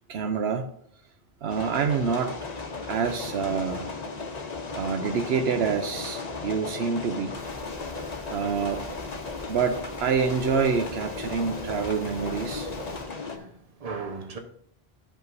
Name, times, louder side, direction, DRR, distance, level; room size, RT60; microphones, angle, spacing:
voice 1, 0.1-0.7 1.4-2.4 2.8-3.9 4.7-7.4 8.3-8.9 9.5-12.7, right 6 dB, 75° right, 0.9 m, -27 dB
sound 1, 1.5-13.4, left 3 dB, 40° left, 1.0 m, -36 dB
Scary static, 7.4-13.0, left 2 dB, 20° right, 2.2 m, -44 dB
voice 2, 13.0-14.4, right 4 dB, 35° right, 1.1 m, -38 dB
12.5 x 5.4 x 2.6 m
omnidirectional pair, 1.1 m